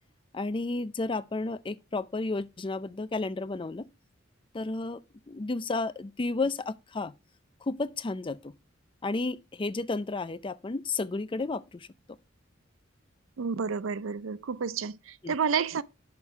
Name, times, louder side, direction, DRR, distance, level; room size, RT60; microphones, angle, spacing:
voice 1, 0.3-3.9 4.5-5.0 5.3-7.1 7.6-8.5 9.0-11.9 15.2-15.4, left 3 dB, 25° left, 0.5 m, -32 dB
voice 2, 13.4-15.8, right 6 dB, 80° right, 0.5 m, -30 dB
6.4 x 5.2 x 5.9 m
head